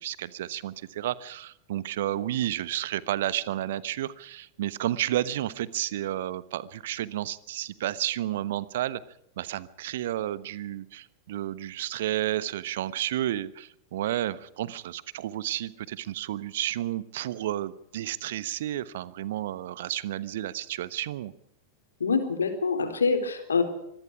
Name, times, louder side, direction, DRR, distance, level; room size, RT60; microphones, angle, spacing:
voice 1, 0.0-9.0 9.4-21.3, right 13 dB, 55° right, 18 dB, 1.1 m, -31 dB
voice 2, 22.0-23.6, left 5 dB, 70° left, 8 dB, 4.0 m, -25 dB
25.5 x 21.0 x 4.8 m, 0.76 s
figure-of-eight pair, 90°, 0 cm